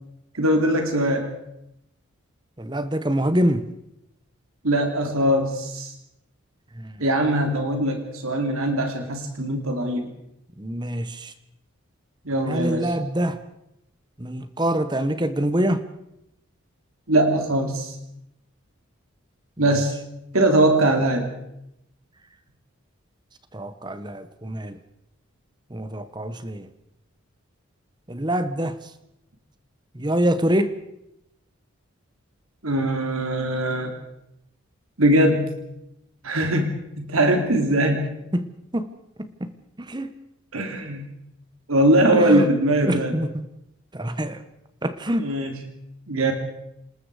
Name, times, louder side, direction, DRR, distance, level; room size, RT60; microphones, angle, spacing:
voice 1, 0.3-1.3 4.6-5.9 7.0-10.1 12.2-12.9 17.1-17.9 19.6-19.9 20.3-21.3 32.6-33.9 35.0-35.5 36.2-38.2 40.5-41.1 41.7-43.1 45.2-45.6 46.1-46.3, right 1 dB, 85° right, 4 dB, 3.2 m, -21 dB
voice 2, 2.6-3.6 6.7-7.0 10.6-11.3 12.5-13.4 14.2-15.8 23.5-24.8 25.7-26.7 28.1-28.9 29.9-30.8 38.3-38.9 39.4-39.5 39.8-40.1 42.1-42.5 42.8-43.4 43.9-44.4 44.8-45.3, right 1 dB, 20° right, 11 dB, 1.1 m, -25 dB
27.5 x 20.0 x 4.9 m, 0.82 s
head